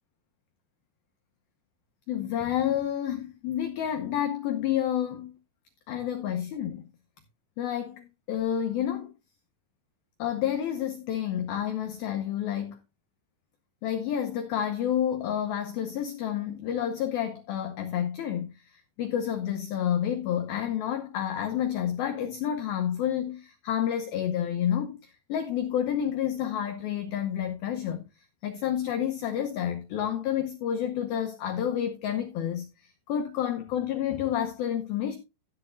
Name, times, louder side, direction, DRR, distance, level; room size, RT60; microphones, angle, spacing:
voice 1, 2.1-5.3 5.9-6.8 7.6-9.1 10.2-12.8 13.8-28.0 28.4-35.2, left 10 dB, 80° left, 2.2 m, -29 dB
13.5 x 9.9 x 2.6 m
omnidirectional pair, 5.5 m